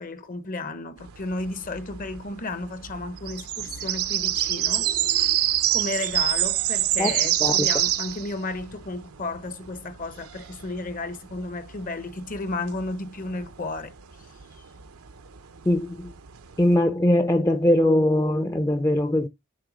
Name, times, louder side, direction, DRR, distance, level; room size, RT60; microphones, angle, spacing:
voice 1, 0.0-13.9, left 2 dB, 40° left, 0.8 m, -33 dB
sound 1, 1.1-16.7, right 12 dB, 85° right, 0.8 m, -27 dB
voice 2, 15.7-16.1 16.6-19.3, left 1 dB, 15° left, 0.5 m, -21 dB
7.7 x 3.2 x 6.1 m
head